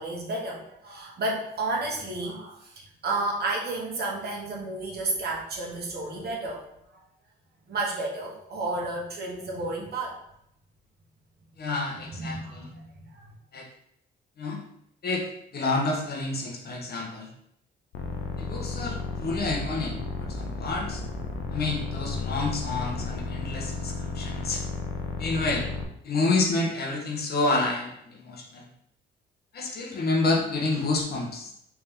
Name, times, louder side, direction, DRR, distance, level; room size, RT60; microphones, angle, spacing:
voice 1, 0.0-6.6 6.9-7.0 7.7-10.2 12.2-12.9 13.1-13.3, right 2 dB, 55° right, -2 dB, 1.1 m, -32 dB
voice 2, 11.6-12.7 13.5-13.7 14.4-14.6 15.0-17.3 18.4-21.0 21.5-24.6 25.2-25.7 26.0-28.7 29.5-31.5, left 3 dB, 55° left, 1 dB, 0.8 m, -29 dB
sound 1, 17.9-25.9, left 3 dB, 90° left, 0.5 m, -33 dB
3.4 x 2.7 x 3.5 m, 0.74 s
cardioid pair, 90°, 20 cm